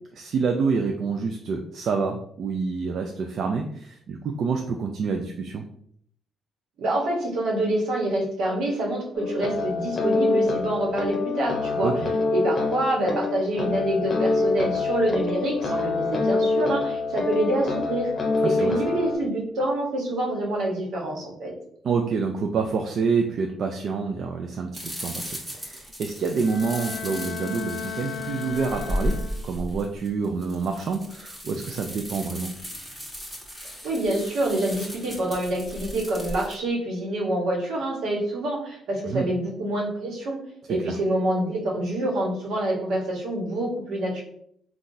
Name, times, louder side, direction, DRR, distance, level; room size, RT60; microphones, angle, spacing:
voice 1, 0.1-5.6 11.8-12.1 18.4-18.8 21.8-29.2 29.4-32.5 39.0-39.3 40.9-41.0, right 5 dB, 65° right, 3 dB, 0.3 m, -27 dB
voice 2, 6.8-11.9 12.3-18.1 18.4-21.5 33.8-40.4 40.7-44.2, right 1 dB, 80° right, -2 dB, 1.1 m, -26 dB
sound 1, 9.1-19.2, left 3 dB, 45° left, 0.7 m, -26 dB
sound 2, 24.7-36.6, equal, 5° right, 1.1 m, -35 dB
Bowed string instrument, 26.3-29.7, left 8 dB, 85° left, 0.3 m, -36 dB
3.7 x 2.3 x 2.6 m, 0.65 s
cardioid pair, 90°, 0 cm